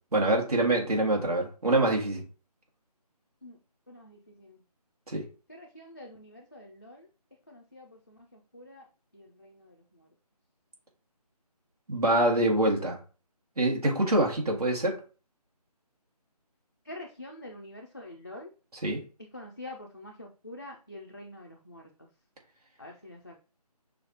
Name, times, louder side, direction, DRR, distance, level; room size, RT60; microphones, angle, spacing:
voice 1, 0.1-2.2 5.1-5.2 11.9-13.0 13.6-15.0 18.8-19.0, right 1 dB, 65° right, -1 dB, 1.7 m, -25 dB
voice 2, 3.9-4.6 5.5-7.1 7.5-8.9 9.1-10.1 16.8-18.5 19.3-21.9 22.8-23.4, left 1 dB, 30° left, -1 dB, 0.4 m, -46 dB
6.2 x 2.4 x 2.8 m, 0.36 s
figure-of-eight pair, 175°, 21 cm